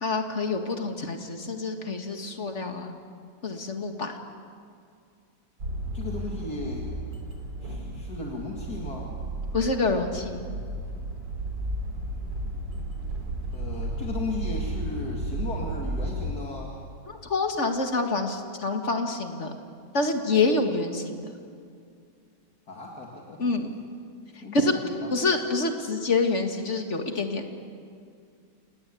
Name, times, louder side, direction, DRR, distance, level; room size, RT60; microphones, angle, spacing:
voice 1, 0.0-3.0 3.4-4.2 9.5-10.4 17.1-19.5 19.9-21.2 23.4-23.7 24.5-24.8 25.1-27.5, left 3 dB, 45° left, 5 dB, 2.1 m, -27 dB
sound 1, 5.6-16.3, right 1 dB, 85° right, 4.1 m, -33 dB
voice 2, 5.9-6.9 7.6-9.1 13.5-16.7 22.7-23.4 24.4-25.3, left 2 dB, 60° left, -1 dB, 2.9 m, -36 dB
29.0 x 19.0 x 8.4 m, 2.3 s
omnidirectional pair, 1.8 m